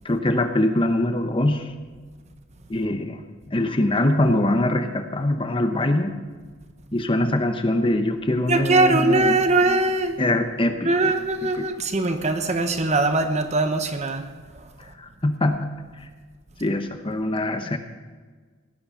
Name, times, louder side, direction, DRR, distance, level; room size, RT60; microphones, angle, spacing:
voice 1, 0.0-1.7 2.7-3.2 3.5-6.2 6.9-9.4 10.2-10.9 11.6-11.7 15.0-15.8 16.6-17.8, left 1 dB, 25° left, 7 dB, 0.8 m, -23 dB
voice 2, 8.5-10.2 10.8-14.3 14.5-14.7, right 2 dB, 30° right, 7 dB, 1.1 m, -21 dB
17.5 x 11.0 x 5.7 m, 1.5 s
head